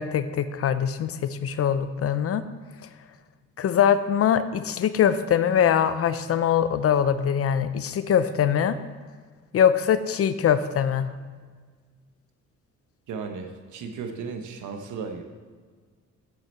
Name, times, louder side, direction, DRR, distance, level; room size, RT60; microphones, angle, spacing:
voice 1, 0.0-2.4 3.6-8.8 9.5-11.1, left 8 dB, 50° left, 12 dB, 0.5 m, -22 dB
voice 2, 13.1-15.2, right 5 dB, 75° right, 6 dB, 0.9 m, -35 dB
8.2 x 6.5 x 4.2 m, 1.5 s
cardioid pair, 90°, 30 cm